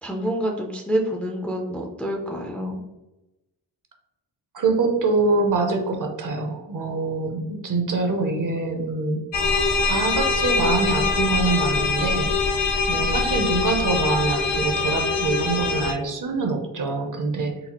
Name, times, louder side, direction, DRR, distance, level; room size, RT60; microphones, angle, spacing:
voice 1, 0.0-2.8, equal, 5° left, 0 dB, 0.3 m, -27 dB
voice 2, 4.5-9.2 9.8-12.3 12.9-17.6, right 3 dB, 50° right, 4 dB, 0.6 m, -24 dB
sound 1, 9.3-15.9, left 4 dB, 80° left, 0.6 m, -23 dB
4.0 x 2.3 x 2.9 m, 0.98 s
wide cardioid pair, 120°, 42 cm